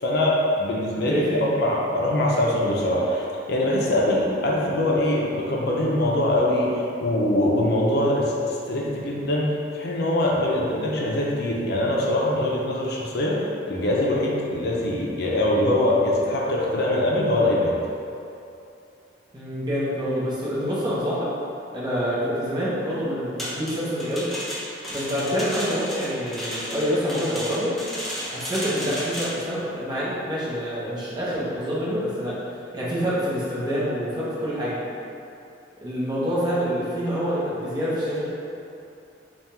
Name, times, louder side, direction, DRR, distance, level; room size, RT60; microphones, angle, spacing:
voice 1, 0.0-13.4 13.7-17.7, left 1 dB, 60° left, -3 dB, 0.5 m, -23 dB
voice 2, 1.0-1.5 19.3-21.3 21.7-24.3 24.9-27.7 28.3-34.8 35.8-38.3, equal, 25° right, -9 dB, 1.0 m, -26 dB
sound 1, 23.4-29.5, equal, ahead, 0.7 m, -33 dB
3.5 x 2.4 x 4.3 m, 2.7 s
head